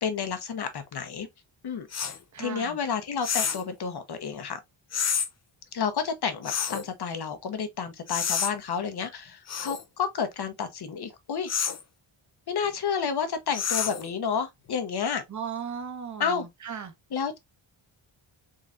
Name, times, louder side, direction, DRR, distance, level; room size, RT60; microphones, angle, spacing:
voice 1, 0.0-1.3 1.6-4.6 5.7-11.5 12.5-15.2 16.2-16.5 17.1-17.4, left 6 dB, 50° left, 0.8 m, -30 dB
sound 1, 1.9-2.2 3.2-3.7 4.9-5.3 6.4-6.9 8.1-8.5 9.5-9.8 11.5-11.8 13.5-14.1, left 7 dB, 35° left, 0.4 m, -28 dB
voice 2, 2.3-2.8 15.3-16.9, right 7 dB, 35° right, 0.8 m, -36 dB
3.7 x 3.1 x 2.5 m
wide cardioid pair, 140°, 49 cm